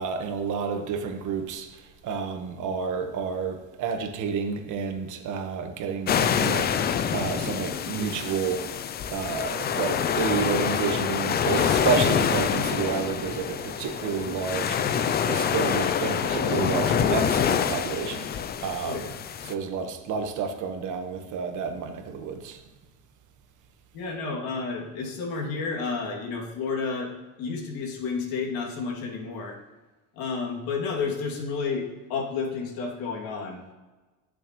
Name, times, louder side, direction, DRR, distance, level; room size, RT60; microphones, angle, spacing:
voice 1, 0.0-1.7 2.0-8.6 9.1-18.3 18.6-19.1 19.4-22.6, right 6 dB, 45° right, 1.5 m, -30 dB
sound 1, 6.1-19.5, left 7 dB, 25° left, 0.5 m, -26 dB
voice 2, 18.8-19.2 23.9-27.1 27.4-29.6 30.2-33.7, left 4 dB, 55° left, 2.9 m, -31 dB
18.0 x 7.0 x 3.2 m
supercardioid pair, 120°, 41 cm